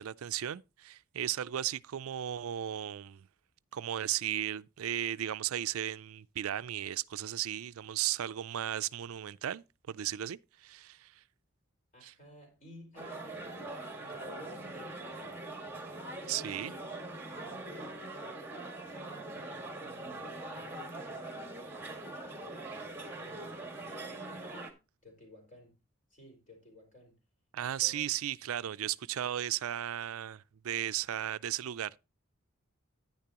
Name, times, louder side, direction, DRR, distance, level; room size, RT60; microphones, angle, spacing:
voice 1, 0.0-3.3 3.7-11.2 12.0-12.1 16.3-16.7 27.5-32.0, right 11 dB, 85° right, 0.4 m, -35 dB
voice 2, 11.9-15.4 16.2-17.0 17.3-18.1 18.9-21.5 22.4-24.6 25.0-25.7 26.1-27.2 27.6-28.3, left 1 dB, 35° left, 4.4 m, -55 dB
sound 1, 13.0-24.7, right 2 dB, 10° right, 1.8 m, -42 dB
10.5 x 9.8 x 2.9 m
head